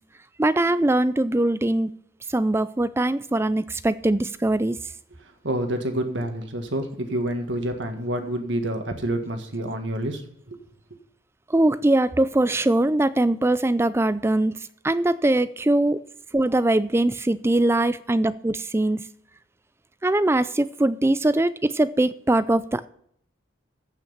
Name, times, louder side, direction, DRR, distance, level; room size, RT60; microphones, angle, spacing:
voice 1, 0.4-1.9 2.3-4.8 11.5-14.6 14.8-16.0 16.3-19.1 20.0-22.9, right 1 dB, 15° right, 0.3 m, -22 dB
voice 2, 5.2-10.6, right 1 dB, 70° right, 1.8 m, -28 dB
15.0 x 5.9 x 5.7 m
head